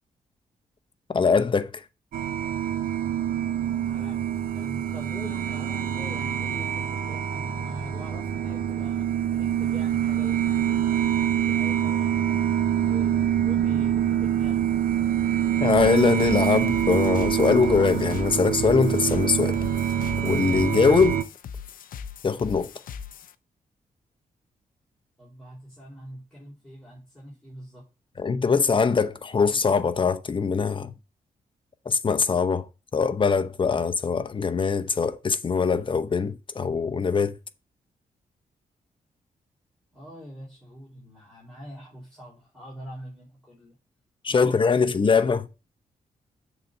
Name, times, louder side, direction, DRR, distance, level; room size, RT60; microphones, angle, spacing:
voice 1, 1.1-1.7 15.6-19.6 20.2-21.2 22.2-22.7 28.2-30.9 31.9-32.7 32.9-37.4 44.2-45.5, left 5 dB, 35° left, 0.9 m, -22 dB
sound 1, 2.1-21.2, right 10 dB, 85° right, 0.8 m, -25 dB
voice 2, 3.9-4.2 4.5-9.1 9.3-10.8 11.5-14.7 25.2-27.8 39.9-43.7 44.3-45.3, left 1 dB, 5° left, 4.4 m, -44 dB
sound 2, 15.7-23.3, left 7 dB, 75° left, 0.6 m, -39 dB
7.2 x 4.1 x 6.7 m
cardioid pair, 90°, 14 cm